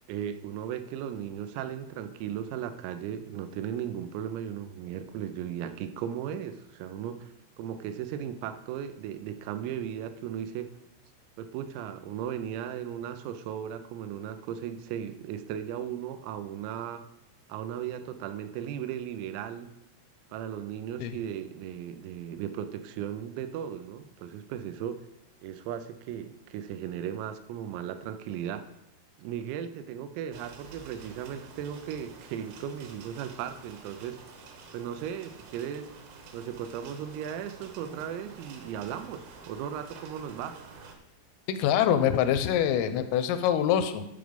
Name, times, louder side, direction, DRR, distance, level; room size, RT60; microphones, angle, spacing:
voice 1, 0.1-7.3 7.6-10.7 11.4-17.0 17.5-19.7 20.3-25.0 25.4-28.7 29.2-34.2 34.7-35.9 36.3-40.6, right 9 dB, 90° right, 10 dB, 3.4 m, -36 dB
sound 1, 30.3-41.0, right 4 dB, 70° right, 2.4 m, -49 dB
voice 2, 41.5-44.1, left 9 dB, 85° left, 10 dB, 3.2 m, -25 dB
11.5 x 5.1 x 5.2 m, 0.86 s
omnidirectional pair, 5.8 m